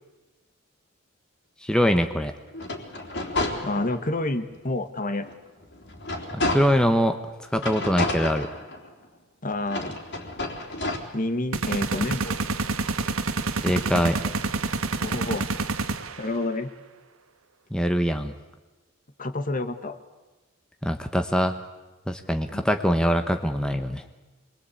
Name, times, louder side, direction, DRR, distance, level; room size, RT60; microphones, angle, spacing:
voice 1, 1.6-2.3 6.3-7.2 7.5-8.5 13.6-14.2 17.7-18.3 20.8-21.6 22.1-24.0, equal, 5° left, 6 dB, 1.1 m, -23 dB
sound 1, 2.5-4.2 4.7-4.8 5.2-7.0 7.6-9.1 9.6-11.0, left 2 dB, 60° left, 3.7 m, -30 dB
voice 2, 3.6-5.3 9.4-10.0 11.1-12.4 15.0-15.5 16.2-16.7 19.2-20.0 22.5-22.7, left 2 dB, 40° left, 9 dB, 1.6 m, -29 dB
sound 2, 11.5-16.4, right 3 dB, 90° right, 1.4 m, -28 dB
27.0 x 21.5 x 8.5 m, 1.2 s
head